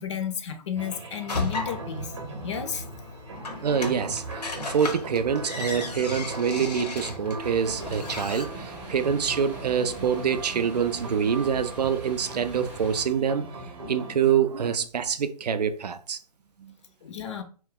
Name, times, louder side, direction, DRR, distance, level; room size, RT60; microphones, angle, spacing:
voice 1, 0.0-2.1 2.4-2.9 17.0-17.4, left 8 dB, 45° left, 0.5 m, -32 dB
sound 1, 0.8-14.2, right 2 dB, 40° right, 0.8 m, -40 dB
sound 2, 1.3-8.4, left 3 dB, 70° left, 0.8 m, -35 dB
voice 2, 3.6-13.5 13.9-16.2 16.6-16.7, right 7 dB, 75° right, 0.4 m, -26 dB
sound 3, 7.4-13.1, right 2 dB, 10° right, 0.6 m, -43 dB
2.2 x 2.1 x 3.7 m
figure-of-eight pair, 140°, 21 cm